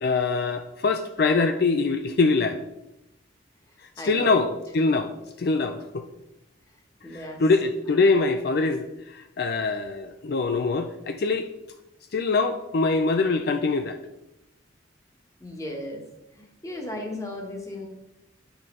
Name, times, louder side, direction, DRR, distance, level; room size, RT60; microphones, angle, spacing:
voice 1, 0.0-2.6 4.0-5.1 5.4-6.1 7.1-11.5 12.1-14.0, left 3 dB, 55° left, 8 dB, 0.4 m, -24 dB
voice 2, 4.0-4.3 7.0-7.4 15.4-16.0 16.3-17.9, left 1 dB, 15° left, 2 dB, 1.3 m, -35 dB
9.1 x 5.9 x 3.7 m, 0.94 s
head